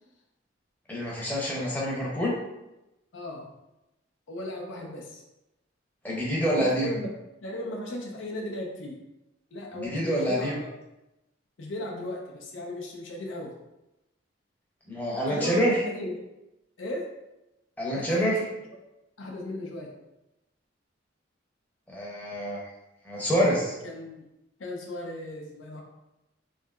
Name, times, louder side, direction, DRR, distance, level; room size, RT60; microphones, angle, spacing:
voice 1, 0.9-2.4 6.0-6.9 9.7-10.6 14.9-15.8 17.8-18.4 21.9-22.7 23.0-23.7, equal, 10° left, -5 dB, 0.7 m, -26 dB
voice 2, 3.1-3.5 4.3-5.2 6.6-7.1 7.4-9.0 9.5-10.7 11.6-13.5 15.3-16.1 16.8-17.1 17.9-18.4 19.2-19.9 23.8-24.2 24.6-25.8, left 1 dB, 85° left, 1 dB, 0.5 m, -36 dB
3.2 x 2.7 x 2.3 m, 0.94 s
head